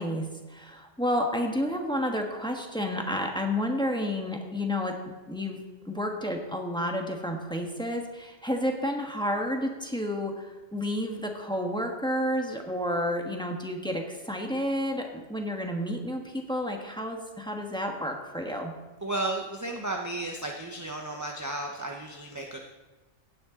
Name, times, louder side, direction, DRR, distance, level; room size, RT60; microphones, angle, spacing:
voice 1, 0.0-5.0 5.3-5.6 5.8-18.7, equal, 5° left, 2 dB, 1.3 m, -30 dB
voice 2, 19.0-22.6, right 2 dB, 15° right, 1 dB, 0.8 m, -33 dB
16.5 x 9.7 x 3.8 m, 1.2 s
omnidirectional pair, 1.3 m